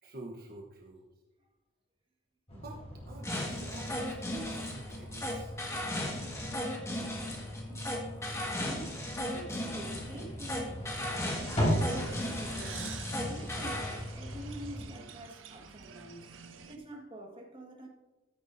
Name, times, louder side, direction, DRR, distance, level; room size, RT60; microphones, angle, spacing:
voice 1, 0.0-1.0 2.5-2.8 3.0-5.5, right 1 dB, 50° right, 1.1 m, -47 dB
sound 1, 2.5-14.8, equal, 30° left, 3.4 m, -38 dB
sound 2, 3.2-14.0, left 1 dB, 15° left, 1.7 m, -36 dB
voice 2, 7.7-9.0 9.3-11.4 11.9-16.3 16.7-17.9, right 1 dB, 25° right, 1.7 m, -47 dB
sound 3, 11.3-16.8, right 6 dB, 80° right, 0.8 m, -48 dB
13.5 x 9.2 x 2.7 m
head